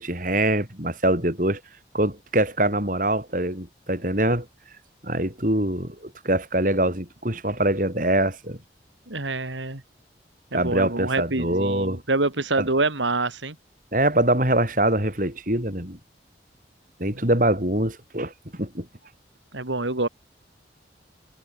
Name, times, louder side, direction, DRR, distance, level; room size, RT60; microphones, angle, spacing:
voice 1, 0.0-1.6 1.9-4.5 5.0-8.6 10.5-12.0 12.6-12.7 13.9-16.0 17.0-18.9, right 1 dB, 45° right, 7.1 m, -24 dB
voice 2, 9.1-9.8 10.5-13.5 19.5-20.1, right 2 dB, 90° right, 3.0 m, -26 dB
head